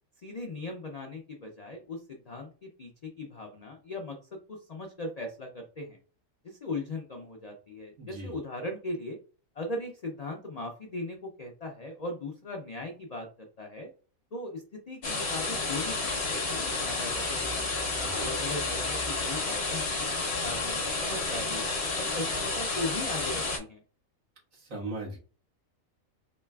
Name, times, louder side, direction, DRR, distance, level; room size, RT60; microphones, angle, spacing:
voice 1, 0.2-4.2 4.5-6.0 6.4-9.2 9.5-13.9 14.3-17.8 18.2-21.6 22.0-23.8, left 2 dB, 80° left, 2 dB, 0.3 m, -39 dB
voice 2, 8.0-8.4 17.9-18.3 24.5-25.2, right 2 dB, 65° right, -4 dB, 1.8 m, -39 dB
sound 1, 15.0-23.6, left 3 dB, 50° left, 1.2 m, -31 dB
4.0 x 3.1 x 2.3 m, 0.38 s
omnidirectional pair, 1.4 m